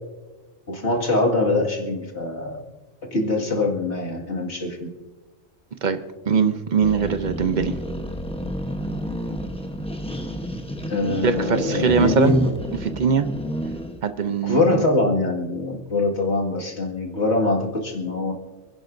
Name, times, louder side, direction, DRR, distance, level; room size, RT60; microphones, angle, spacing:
voice 1, 0.7-2.6 3.1-4.9 10.9-12.5 14.4-18.3, left 2 dB, 60° left, -1 dB, 2.4 m, -23 dB
voice 2, 6.3-7.8 11.2-12.3 12.8-13.3 14.0-14.8, right 6 dB, 45° right, 10 dB, 0.7 m, -21 dB
sound 1, 6.8-14.0, equal, 5° left, 0.8 m, -31 dB
27.5 x 10.5 x 2.6 m, 1.3 s
omnidirectional pair, 1.3 m